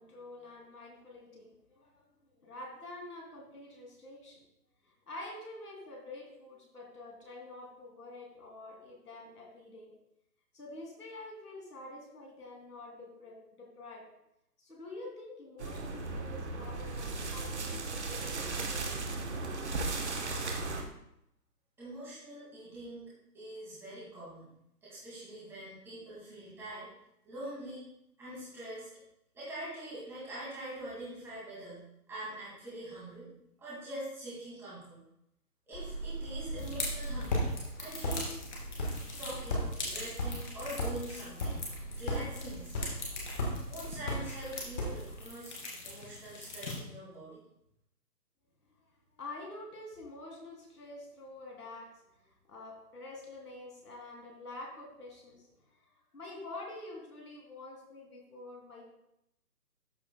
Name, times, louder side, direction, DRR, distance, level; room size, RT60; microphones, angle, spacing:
voice 1, 0.0-4.4 4.8-9.9 10.5-14.0 14.6-19.0 48.8-58.9, left 2 dB, 65° left, -1 dB, 2.9 m, -47 dB
sound 1, 15.6-20.8, right 3 dB, 45° right, 1.3 m, -36 dB
voice 2, 21.8-24.5 24.8-26.9 27.2-27.9 28.2-28.9 29.3-33.3 33.6-35.0 35.7-37.4 37.8-38.3 39.2-41.6 41.9-42.8 43.7-45.5 45.8-47.4, right 1 dB, 5° right, -9 dB, 2.3 m, -44 dB
sound 2, 35.7-45.3, equal, 25° left, 1.5 m, -37 dB
sound 3, 36.6-46.7, left 2 dB, 45° left, 3.0 m, -43 dB
13.5 x 6.3 x 2.3 m, 0.78 s
figure-of-eight pair, 160°, 49 cm